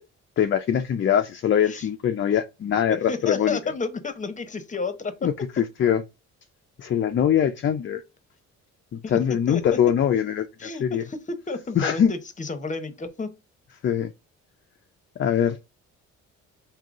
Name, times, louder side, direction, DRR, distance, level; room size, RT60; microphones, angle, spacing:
voice 1, 0.4-3.7 5.2-6.0 6.8-8.0 8.9-11.0 11.8-12.1 13.8-14.1 15.2-15.6, left 9 dB, 40° left, 0.5 m, -23 dB
voice 2, 3.1-5.3 9.0-9.2 9.5-9.6 10.6-13.3, left 4 dB, 25° left, 0.9 m, -31 dB
3.8 x 2.8 x 3.6 m
cardioid pair, 90°, 30 cm